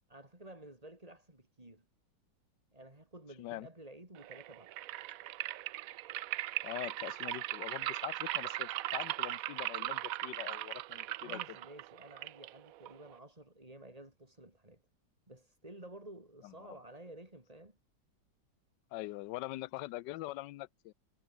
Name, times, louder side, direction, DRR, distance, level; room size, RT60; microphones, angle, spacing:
voice 1, 0.1-1.8 2.7-4.7 11.2-14.8 15.3-17.8, right 1 dB, 20° right, 4.3 m, -52 dB
sound 1, 4.2-13.2, right 15 dB, 70° right, 0.8 m, -39 dB
voice 2, 6.6-11.4 16.4-16.5 18.9-20.9, left 17 dB, 80° left, 1.3 m, -43 dB
omnidirectional pair, 1.9 m